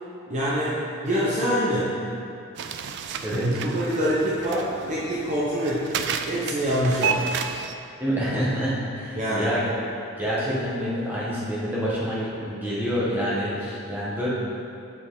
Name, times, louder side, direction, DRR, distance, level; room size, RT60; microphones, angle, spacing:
voice 1, 0.3-2.0 3.3-7.5 9.2-9.6, equal, 35° right, -8 dB, 0.8 m, -25 dB
sound 1, 2.6-7.8, right 6 dB, 50° right, 0.3 m, -31 dB
voice 2, 8.0-9.6 10.2-14.3, equal, 10° right, -8 dB, 1.3 m, -27 dB
6.6 x 6.0 x 3.8 m, 2.6 s
head